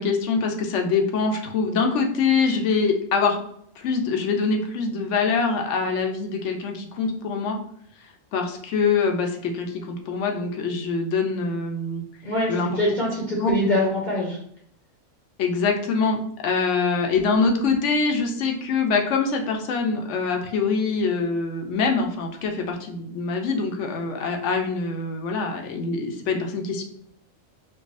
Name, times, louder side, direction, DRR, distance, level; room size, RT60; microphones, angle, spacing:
voice 1, 0.0-3.4 3.8-7.6 8.3-12.0 12.5-12.8 13.4-13.6 15.4-26.8, left 4 dB, 70° left, 4 dB, 0.9 m, -24 dB
voice 2, 12.2-14.4, left 1 dB, 45° left, -4 dB, 0.8 m, -24 dB
4.6 x 2.3 x 2.5 m, 0.68 s
omnidirectional pair, 1.3 m